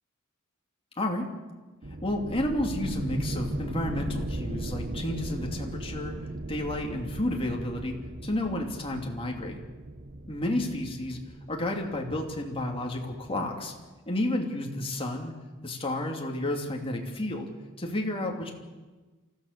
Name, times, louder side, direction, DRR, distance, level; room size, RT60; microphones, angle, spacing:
voice 1, 1.0-1.3 2.0-6.1 6.5-7.9 8.2-9.6 10.3-11.2 11.5-13.7 14.1-15.3 15.6-17.5 17.8-18.5, left 1 dB, 25° left, 1 dB, 2.9 m, -31 dB
sound 1, 1.8-13.3, right 1 dB, 45° right, 1.0 m, -37 dB
28.0 x 14.5 x 6.8 m, 1.3 s
head